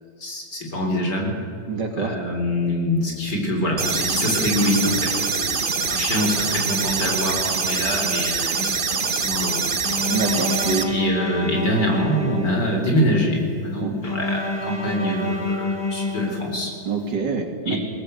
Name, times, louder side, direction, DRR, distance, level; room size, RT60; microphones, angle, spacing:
voice 1, 0.2-1.4 2.0-9.7 10.9-16.7 17.7-17.8, equal, 70° left, 1 dB, 4.7 m, -24 dB
voice 2, 1.7-2.1 10.1-10.9 13.8-13.9 16.9-17.8, right 5 dB, 80° right, 4 dB, 3.0 m, -25 dB
sound 1, 3.8-10.8, right 5 dB, 35° right, 1.2 m, -24 dB
Bowed string instrument, 9.8-13.0 14.0-17.0, left 2 dB, 15° left, 1.6 m, -28 dB
20.5 x 18.5 x 8.2 m, 2.6 s
omnidirectional pair, 1.9 m